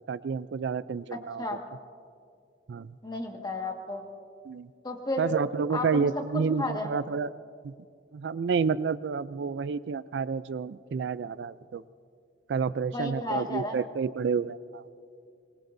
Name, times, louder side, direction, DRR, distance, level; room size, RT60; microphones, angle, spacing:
voice 1, 0.1-1.4 2.7-2.9 4.5-4.7 5.2-7.3 7.6-7.7 8.1-11.8 12.5-14.9, right 5 dB, 70° right, 16 dB, 0.4 m, -29 dB
voice 2, 3.0-4.1 4.8-5.3 5.7-6.1 6.6-6.9 12.9-13.8, left 2 dB, 25° left, 2 dB, 1.7 m, -32 dB
25.5 x 21.0 x 2.6 m, 2.4 s
head